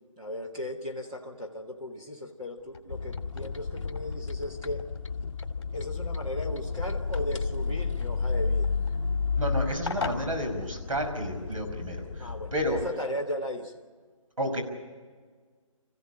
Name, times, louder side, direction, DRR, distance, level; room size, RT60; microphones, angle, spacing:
voice 1, 0.2-4.9 5.7-8.7 12.2-13.8, left 1 dB, 10° right, -3 dB, 1.5 m, -36 dB
sound 1, 2.6-11.3, left 4 dB, 45° left, 2.6 m, -44 dB
sound 2, 2.9-12.9, left 4 dB, 60° left, 1.0 m, -32 dB
voice 2, 9.4-12.8 14.4-14.6, equal, 75° right, 5 dB, 5.4 m, -31 dB
26.0 x 15.5 x 8.9 m, 1.5 s
hypercardioid pair, 175°, 18 cm